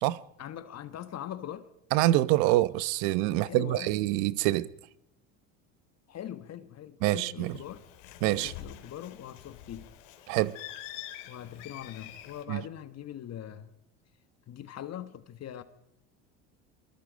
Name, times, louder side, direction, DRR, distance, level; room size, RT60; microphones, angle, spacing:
voice 1, 0.4-1.7 3.3-3.9 6.1-7.8 8.3-9.9 11.3-13.7 14.5-15.6, left 10 dB, 40° left, 1.4 m, -42 dB
voice 2, 1.9-4.7 7.0-7.6 8.2-8.5 10.3-10.6 12.5-12.6, right 16 dB, 70° right, 1.0 m, -26 dB
Bird, 7.4-12.4, left 12 dB, 80° left, 3.0 m, -46 dB
24.5 x 23.0 x 5.2 m
supercardioid pair, 95°, 38 cm